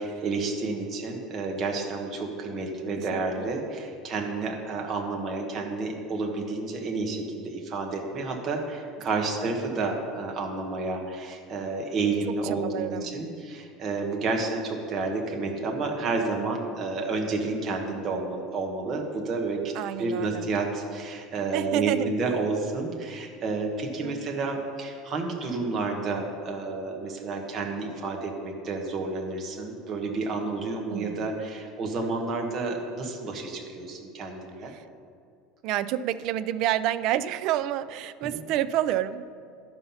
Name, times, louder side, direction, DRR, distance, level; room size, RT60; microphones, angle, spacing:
voice 1, 0.0-19.7 20.0-34.7, right 3 dB, 25° right, 1 dB, 1.2 m, -30 dB
voice 2, 3.1-3.5 9.2-9.5 12.3-13.2 19.7-20.5 21.5-22.5 24.0-24.2 30.9-31.3 34.7-34.8 35.6-39.2, right 12 dB, 40° right, 14 dB, 0.3 m, -29 dB
12.0 x 5.6 x 5.6 m, 2.3 s
cardioid pair, 180°, 0 cm